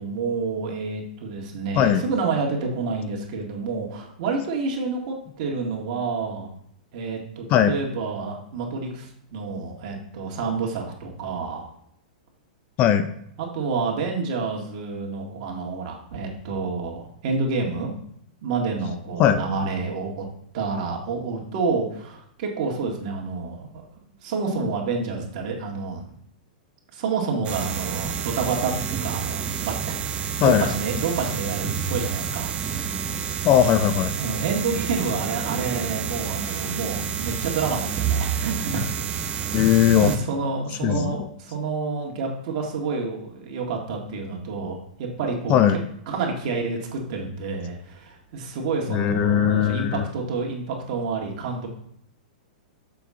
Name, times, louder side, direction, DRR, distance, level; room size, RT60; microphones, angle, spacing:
voice 1, 0.0-6.5 6.9-11.7 13.4-17.9 18.4-20.3 20.5-23.7 24.2-26.2 26.9-32.5 34.2-38.9 39.2-39.6 39.9-45.8 46.1-51.7, right 4 dB, 55° right, 0 dB, 2.0 m, -29 dB
voice 2, 12.8-13.1 19.2-19.4 30.4-30.7 33.4-34.2 39.5-40.1 40.8-41.2 45.5-45.8 48.9-50.0, left 10 dB, 35° left, 10 dB, 0.6 m, -19 dB
sound 1, 27.4-40.2, right 7 dB, 25° right, 0.7 m, -29 dB
6.8 x 5.7 x 3.7 m, 0.68 s
hypercardioid pair, 130°, 5 cm